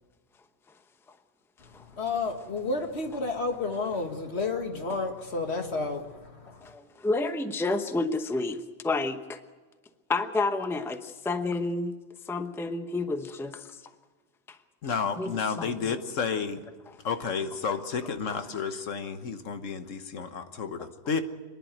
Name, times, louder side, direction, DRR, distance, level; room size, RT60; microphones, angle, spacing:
voice 1, 2.0-6.6, left 3 dB, 60° left, 2.0 m, -31 dB
voice 2, 6.6-9.4 10.1-12.0 12.3-13.8 14.5-14.6 14.9-15.9 16.9-17.0 18.3-18.4, left 3 dB, ahead, 0.8 m, -30 dB
voice 3, 14.8-16.6 17.0-21.2, left 5 dB, 85° left, 1.5 m, -31 dB
26.5 x 11.0 x 9.2 m
omnidirectional pair, 1.3 m